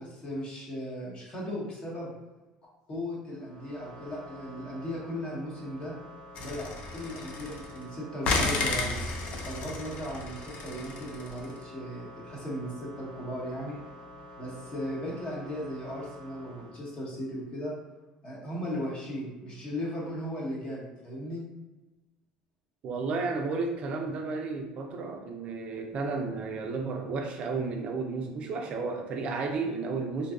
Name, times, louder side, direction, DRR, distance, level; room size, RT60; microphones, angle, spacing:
voice 1, 0.0-2.1 2.9-5.9 6.4-9.0 9.4-13.8 14.4-17.7 18.2-21.4, equal, 40° left, -5 dB, 0.9 m, -37 dB
sound 1, 3.3-17.4 19.6-20.3, left 1 dB, 75° left, 1.0 m, -49 dB
sound 2, 6.4-7.8 8.2-11.5, left 3 dB, 55° left, 0.4 m, -32 dB
voice 2, 22.8-30.3, right 4 dB, 50° right, 3 dB, 0.3 m, -32 dB
2.6 x 2.2 x 2.3 m, 1.1 s
supercardioid pair, 115°, 3 cm